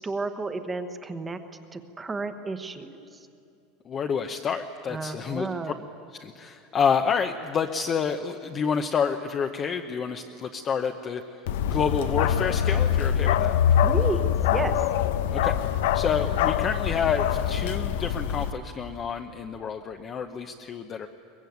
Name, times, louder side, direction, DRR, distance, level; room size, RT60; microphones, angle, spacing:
voice 1, 0.0-1.4 1.7-3.3 4.9-5.8 13.8-14.8, right 3 dB, 10° right, 9 dB, 1.1 m, -32 dB
voice 2, 3.8-5.5 6.2-13.6 15.3-15.6 15.9-21.1, left 6 dB, 25° left, 5 dB, 0.7 m, -28 dB
Bark, 11.5-18.5, left 9 dB, 80° left, 0.8 m, -24 dB
23.0 x 21.0 x 9.3 m, 2.6 s
supercardioid pair, 170°, 0 cm